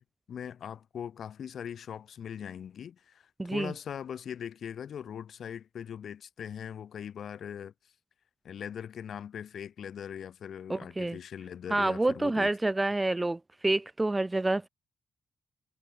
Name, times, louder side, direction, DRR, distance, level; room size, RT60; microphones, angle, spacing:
voice 1, 0.0-7.7 8.4-12.5, left 8 dB, 60° left, 7.1 m, -41 dB
voice 2, 3.4-3.7 10.7-11.2 11.7-14.7, right 2 dB, 15° right, 1.3 m, -28 dB
cardioid pair, 95°, 0 cm